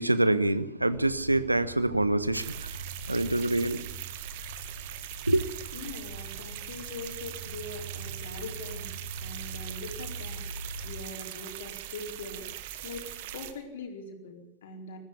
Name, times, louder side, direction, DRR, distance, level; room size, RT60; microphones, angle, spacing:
voice 1, 0.0-2.7 3.1-3.8 5.3-5.4, right 2 dB, 85° right, 1.2 m, -25 dB
sound 1, 0.9-11.1, right 2 dB, 90° left, 3.3 m, -42 dB
sound 2, 2.3-13.5, right 12 dB, 50° right, 1.8 m, -41 dB
voice 2, 5.7-10.4 10.8-12.5 12.8-15.0, left 3 dB, 60° left, 4.6 m, -42 dB
20.5 x 14.5 x 9.9 m
figure-of-eight pair, 90°, 0 cm